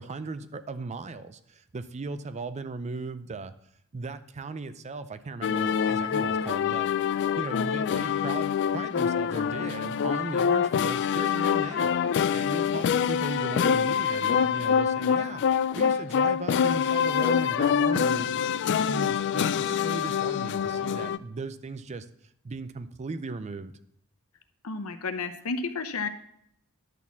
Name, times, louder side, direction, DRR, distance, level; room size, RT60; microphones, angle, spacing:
voice 1, 0.0-3.5 3.9-6.9 7.4-11.9 12.3-18.3 18.9-22.1 22.4-23.7, right 3 dB, 30° right, 12 dB, 0.4 m, -37 dB
sound 1, 5.4-21.2, left 7 dB, 55° left, 0.3 m, -25 dB
voice 2, 24.6-26.1, left 4 dB, 80° left, 9 dB, 0.8 m, -32 dB
11.0 x 4.2 x 7.0 m, 0.71 s
head